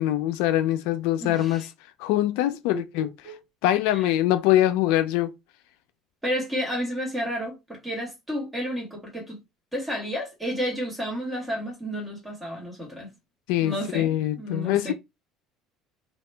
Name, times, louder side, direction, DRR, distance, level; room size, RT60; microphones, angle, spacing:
voice 1, 0.0-1.7 2.0-3.1 3.6-5.3 13.5-14.9, left 13 dB, 80° left, 0.3 m, -23 dB
voice 2, 1.2-1.7 2.7-3.4 3.9-4.1 6.2-9.4 9.7-13.1 13.6-14.9, equal, 5° right, 1.3 m, -31 dB
2.8 x 2.2 x 3.2 m
cardioid pair, 160°, 0 cm